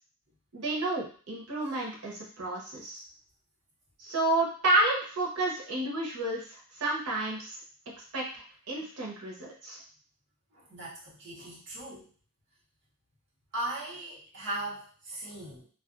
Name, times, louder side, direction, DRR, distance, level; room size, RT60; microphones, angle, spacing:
voice 1, 0.5-3.0 4.0-6.5 6.8-7.6 8.1-9.8, right 2 dB, 90° right, -2 dB, 0.9 m, -30 dB
voice 2, 10.5-12.0 13.5-15.7, right 1 dB, 55° right, -6 dB, 1.0 m, -38 dB
2.4 x 2.3 x 2.5 m, 0.42 s
head